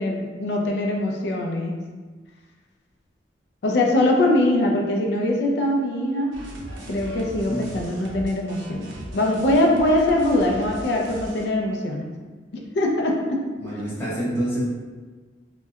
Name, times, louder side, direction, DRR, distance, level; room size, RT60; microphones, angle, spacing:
voice 1, 0.0-1.8 3.6-6.4 6.9-12.1 12.5-13.4, left 1 dB, 65° left, 0 dB, 0.3 m, -22 dB
sound 1, 6.3-11.5, right 1 dB, 90° right, 0.5 m, -38 dB
voice 2, 13.6-14.7, equal, 15° left, -11 dB, 0.8 m, -27 dB
2.7 x 2.1 x 2.3 m, 1.4 s
head